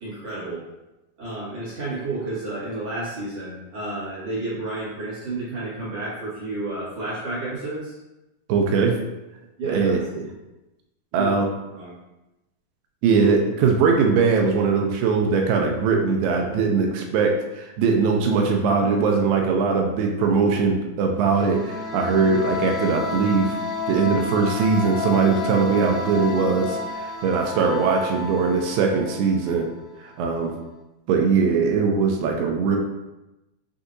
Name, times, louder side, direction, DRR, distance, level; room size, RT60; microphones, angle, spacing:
voice 1, 0.0-0.6 1.2-8.0 9.6-10.1 11.1-11.3 11.8-11.9, right 2 dB, 55° right, -9 dB, 2.0 m, -31 dB
voice 2, 8.5-9.0 9.7-10.3 11.1-11.5 13.0-23.6 23.9-29.7 30.0-30.6 31.1-32.8, right 5 dB, 80° right, 2 dB, 2.1 m, -21 dB
sound 1, 21.2-29.8, left 4 dB, 85° left, 1.9 m, -31 dB
6.7 x 2.6 x 2.6 m, 0.99 s
omnidirectional pair, 4.3 m